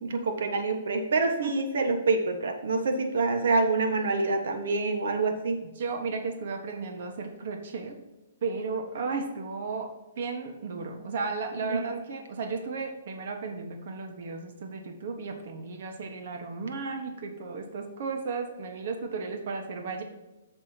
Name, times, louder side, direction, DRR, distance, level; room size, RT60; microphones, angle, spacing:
voice 1, 0.0-5.6 11.7-12.0, right 3 dB, 70° right, 5 dB, 1.4 m, -26 dB
voice 2, 5.7-8.0 8.4-20.0, right 4 dB, 55° right, 4 dB, 1.4 m, -34 dB
14.0 x 6.1 x 2.9 m, 1.1 s
hypercardioid pair, 165°, 0 cm